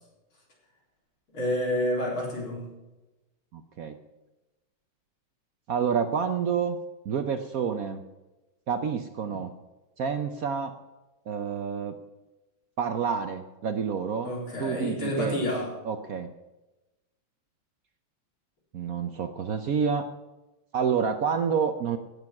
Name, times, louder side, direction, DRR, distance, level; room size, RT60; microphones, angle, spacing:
voice 1, 1.3-2.7 9.3-9.4 14.2-15.7, left 1 dB, 85° left, -2 dB, 4.8 m, -29 dB
voice 2, 3.5-4.0 5.7-6.8 7.0-8.0 8.7-9.5 10.0-10.7 11.3-12.0 12.8-14.3 14.6-15.4 15.8-16.3 18.7-20.1 20.7-22.0, right 6 dB, 60° right, 9 dB, 1.0 m, -28 dB
17.5 x 7.1 x 6.0 m, 1.1 s
omnidirectional pair, 2.2 m